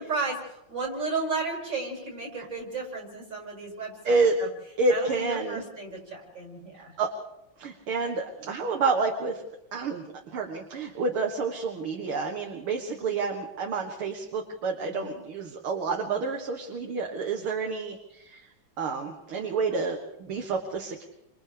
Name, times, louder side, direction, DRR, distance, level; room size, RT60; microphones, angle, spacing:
voice 1, 0.0-4.5 4.9-7.0 12.9-13.1 14.8-15.2 19.3-19.6, right 3 dB, 50° right, -1 dB, 7.0 m, -34 dB
voice 2, 4.8-5.6 7.0-7.1 7.6-9.4 9.7-18.5 18.8-21.0, right 4 dB, 75° right, 2 dB, 2.4 m, -29 dB
29.5 x 26.5 x 3.4 m, 0.87 s
omnidirectional pair, 2.4 m